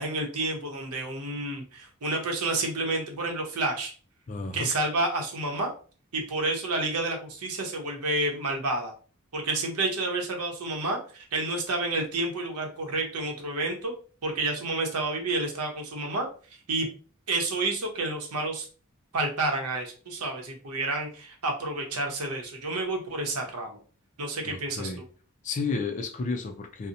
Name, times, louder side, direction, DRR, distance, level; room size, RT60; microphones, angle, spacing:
voice 1, 0.0-3.9 4.5-5.7 6.1-8.9 9.3-13.9 14.2-16.3 16.7-16.9 17.3-18.7 19.1-23.8 24.2-25.0, right 2 dB, 85° right, 2 dB, 0.7 m, -29 dB
voice 2, 4.3-4.7 24.4-25.0 25.4-26.9, left 4 dB, 35° left, 4 dB, 0.3 m, -32 dB
2.7 x 2.0 x 2.5 m, 0.38 s
head